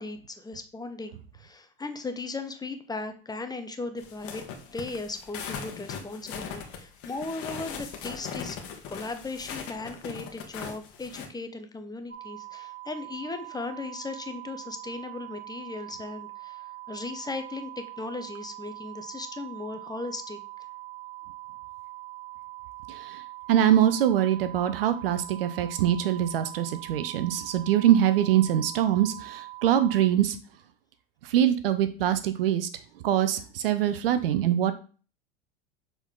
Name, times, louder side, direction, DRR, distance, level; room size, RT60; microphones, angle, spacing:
voice 1, 0.0-4.4 4.7-8.6 8.9-20.4, left 3 dB, 15° left, 7 dB, 1.0 m, -37 dB
sound 1, 4.0-11.3, left 6 dB, 50° left, 1.4 m, -39 dB
sound 2, 12.1-30.0, right 18 dB, 30° right, 2.5 m, -43 dB
voice 2, 22.9-23.2 23.5-30.4 31.3-32.7 33.0-34.7, right 11 dB, 75° right, 11 dB, 0.8 m, -23 dB
7.1 x 4.1 x 3.7 m, 0.39 s
hypercardioid pair, 75°, 29 cm